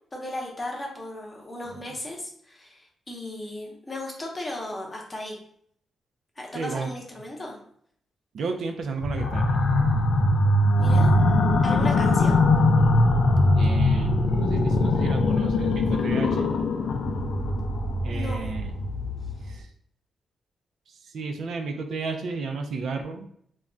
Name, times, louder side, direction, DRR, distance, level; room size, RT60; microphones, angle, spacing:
voice 1, 0.1-5.4 6.4-7.6 10.8-11.1 11.6-12.4 18.1-18.6, left 1 dB, 20° left, -1 dB, 0.7 m, -36 dB
voice 2, 6.5-6.9 8.3-9.6 11.7-12.4 13.6-16.5 18.0-18.7 19.4-19.7 21.0-23.3, right 4 dB, 65° right, 4 dB, 0.3 m, -33 dB
sound 1, 9.0-19.5, left 2 dB, 85° left, 0.4 m, -21 dB
2.3 x 2.1 x 3.7 m, 0.65 s
wide cardioid pair, 155°, 0 cm